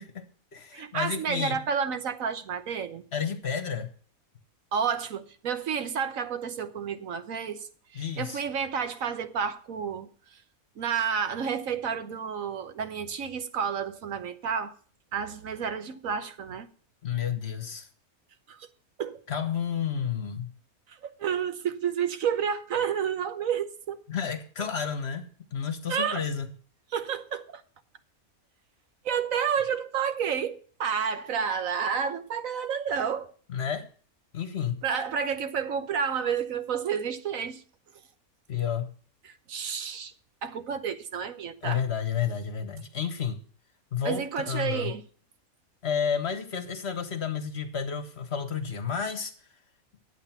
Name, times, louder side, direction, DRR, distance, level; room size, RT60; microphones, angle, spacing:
voice 1, 0.0-1.6 3.1-3.9 7.9-8.4 17.0-17.9 19.3-20.5 24.1-25.3 25.5-26.5 33.5-33.9 34.3-34.8 38.5-38.9 41.6-43.4 43.9-44.9 45.8-49.3, left 7 dB, 50° left, 1.4 m, -31 dB
voice 2, 0.7-3.0 4.7-10.4 10.8-14.7 15.1-16.7 18.5-18.7 19.0-19.2 20.9-24.0 25.9-26.3 26.9-27.6 29.0-33.3 34.8-37.6 39.2-40.1 40.4-41.8 44.0-45.0, right 7 dB, 65° right, 1.3 m, -30 dB
11.0 x 8.2 x 5.9 m
omnidirectional pair, 1.5 m